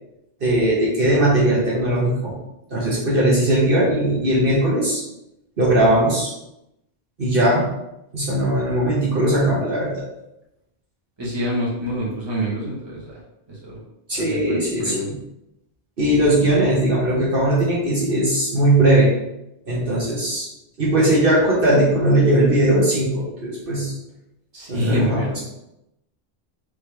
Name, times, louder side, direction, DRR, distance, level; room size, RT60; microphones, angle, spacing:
voice 1, 0.4-2.3 2.7-5.0 5.6-6.3 7.2-7.6 8.1-10.1 14.1-15.2 16.0-19.1 19.7-20.5 20.8-23.9 24.7-25.2, right 1 dB, 55° right, -6 dB, 1.3 m, -19 dB
voice 2, 11.2-13.1 13.6-13.8 14.1-15.0 24.5-25.4, equal, 25° right, -6 dB, 1.3 m, -26 dB
4.8 x 3.1 x 3.4 m, 0.85 s
omnidirectional pair, 1.1 m